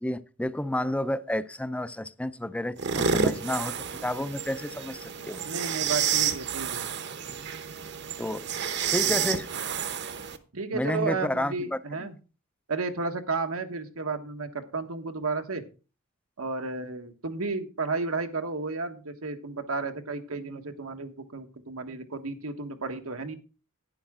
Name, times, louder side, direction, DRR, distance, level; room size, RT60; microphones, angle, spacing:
voice 1, 0.0-3.8 4.0-5.4 8.2-8.5 8.9-9.5 10.7-11.8, left 1 dB, 5° left, 0.4 m, -30 dB
sound 1, 2.8-10.4, right 7 dB, 55° right, 1.0 m, -30 dB
voice 2, 5.4-6.8 9.0-9.3 10.5-12.1 12.7-15.6 16.4-23.4, right 3 dB, 90° right, 1.4 m, -33 dB
11.5 x 9.6 x 3.7 m
head